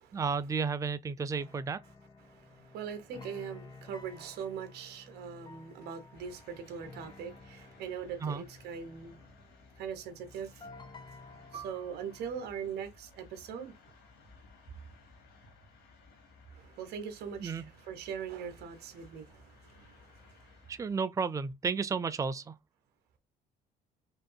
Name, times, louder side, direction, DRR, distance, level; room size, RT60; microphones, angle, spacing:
voice 1, 0.1-1.8 8.2-8.4 17.4-17.6 20.7-22.5, right 5 dB, 20° right, 0.4 m, -32 dB
sound 1, 1.3-12.5, left 3 dB, 25° left, 0.9 m, -53 dB
voice 2, 2.2-9.2 9.8-10.7 11.5-13.7 16.5-20.6, right 7 dB, 75° right, 1.1 m, -41 dB
sound 2, 6.1-21.0, left 3 dB, 70° left, 2.5 m, -59 dB
Piano, 11.5-16.6 16.9-17.1 17.8-18.2, right 8 dB, 50° right, 1.5 m, -54 dB
5.3 x 2.7 x 2.2 m
cardioid pair, 110°, 17 cm